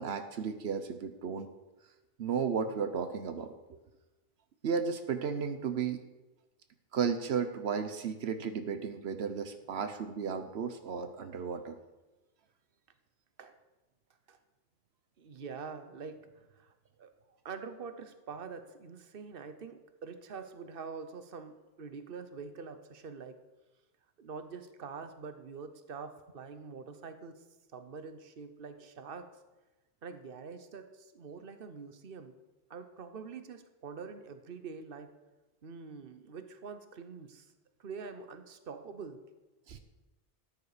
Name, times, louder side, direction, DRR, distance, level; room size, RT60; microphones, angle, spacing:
voice 1, 0.0-1.5 2.2-3.8 4.6-6.0 6.9-11.8 39.7-39.8, right 6 dB, 85° right, 8 dB, 1.1 m, -34 dB
voice 2, 15.2-16.7 17.0-17.1 17.4-23.4 24.2-27.4 27.7-29.3 30.0-32.3 32.7-35.1 35.6-37.5 37.8-39.2, right 5 dB, 60° right, 9 dB, 1.2 m, -45 dB
13.5 x 9.8 x 5.0 m, 1.1 s
omnidirectional pair, 1.0 m